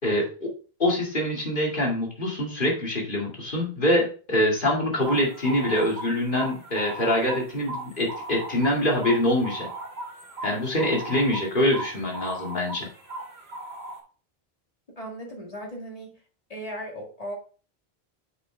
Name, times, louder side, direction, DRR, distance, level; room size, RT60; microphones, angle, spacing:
voice 1, 0.0-0.5 0.8-9.7 10.4-12.9, left 1 dB, 55° left, -1 dB, 2.3 m, -24 dB
sound 1, 5.0-14.0, right 2 dB, 90° right, 2.4 m, -37 dB
voice 2, 15.0-16.2 16.5-17.4, equal, 35° left, -1 dB, 2.0 m, -37 dB
7.7 x 6.2 x 3.3 m, 0.39 s
omnidirectional pair, 1.0 m